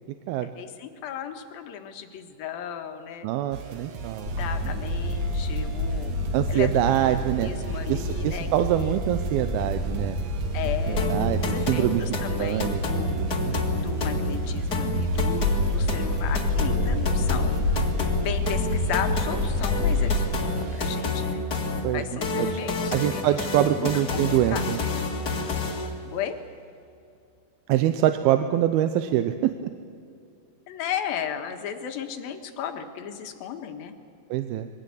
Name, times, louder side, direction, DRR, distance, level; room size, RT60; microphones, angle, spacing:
voice 1, 0.4-3.3 4.0-4.1 4.4-6.1 6.5-6.9 7.4-8.9 10.5-13.2 13.7-17.8 18.2-21.4 21.9-24.2 24.5-24.6 26.0-26.4 30.7-33.9, left 8 dB, 75° left, 6 dB, 3.1 m, -35 dB
voice 2, 3.2-4.3 4.6-4.8 6.3-7.5 7.9-10.2 10.9-12.1 12.4-12.8 13.2-13.6 21.8-22.0 22.4-22.6 22.9-24.8 27.7-29.7 34.3-34.7, right 12 dB, 85° right, 9 dB, 2.6 m, -25 dB
sound 1, 3.5-21.0, right 5 dB, 55° right, 2.3 m, -40 dB
sound 2, 4.3-20.2, left 1 dB, 35° right, 2.0 m, -28 dB
sound 3, 11.0-26.0, left 3 dB, 35° left, 1.9 m, -29 dB
22.5 x 17.5 x 8.4 m, 2.5 s
omnidirectional pair, 4.3 m